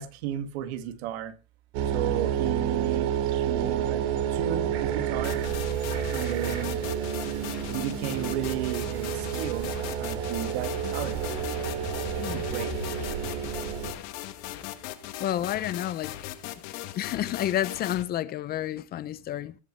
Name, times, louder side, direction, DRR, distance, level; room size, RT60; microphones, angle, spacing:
voice 1, 0.0-1.3 1.9-3.1 3.4-4.0 4.3-5.4 6.1-6.8 7.7-9.7 10.0-11.2 12.3-12.7, right 11 dB, 80° right, 2.2 m, -33 dB
sound 1, 1.7-13.9, right 9 dB, 60° right, 3.0 m, -30 dB
sound 2, 5.2-18.0, left 14 dB, 60° left, 1.8 m, -39 dB
sound 3, 9.9-16.9 17.3-17.7, left 12 dB, 80° left, 2.7 m, -45 dB
voice 2, 15.2-16.1 16.9-19.6, left 12 dB, 30° left, 0.6 m, -30 dB
19.0 x 6.3 x 5.5 m
supercardioid pair, 150°, 32 cm